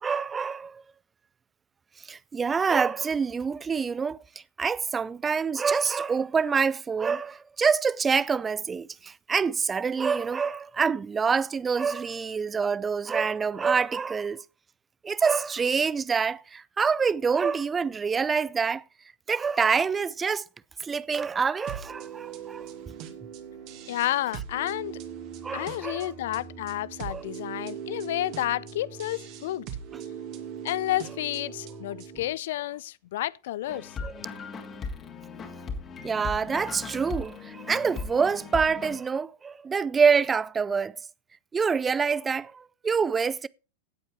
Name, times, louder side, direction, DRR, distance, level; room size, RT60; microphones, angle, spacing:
voice 1, 0.0-0.8 2.1-4.2 4.6-14.4 15.0-18.8 19.3-20.5 20.8-22.7 25.4-26.1 27.1-27.2 33.7-34.1 36.0-41.0 41.5-43.5, right 5 dB, 15° right, 0.5 m, -26 dB
sound 1, 21.7-32.3, right 8 dB, 40° right, 2.3 m, -40 dB
voice 2, 23.9-25.0 25.5-29.7 30.6-33.9, left 14 dB, 55° left, 0.5 m, -30 dB
sound 2, 33.7-39.0, left 4 dB, 25° left, 2.5 m, -38 dB
17.5 x 8.0 x 3.2 m
figure-of-eight pair, 90°, 0 cm